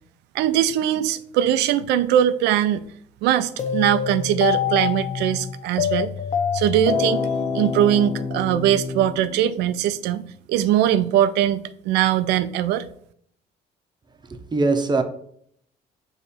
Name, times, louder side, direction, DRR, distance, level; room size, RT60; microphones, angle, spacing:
voice 1, 0.3-2.8 3.2-6.1 6.5-7.3 7.5-10.2 10.5-12.9, right 11 dB, 85° right, 0.5 m, -21 dB
sound 1, 3.6-9.8, left 7 dB, 45° left, 0.7 m, -26 dB
voice 2, 14.2-15.0, right 3 dB, 25° right, 0.8 m, -22 dB
6.8 x 3.2 x 4.4 m
cardioid pair, 110°, 17 cm